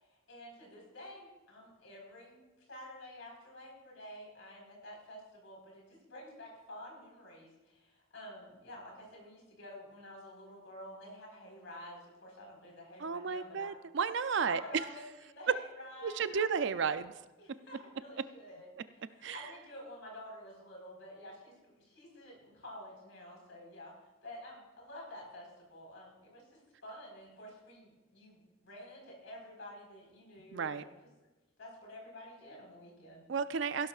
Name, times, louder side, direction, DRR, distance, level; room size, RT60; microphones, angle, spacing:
voice 1, 0.0-2.4 2.7-13.8 14.4-23.9 24.2-30.9 31.6-33.2, left 1 dB, 65° left, -1 dB, 4.4 m, -50 dB
voice 2, 13.0-14.6 16.0-17.1 19.2-19.4 30.5-30.8 33.3-33.9, right 6 dB, 60° right, 13 dB, 0.4 m, -33 dB
16.0 x 12.0 x 2.4 m, 1.1 s
head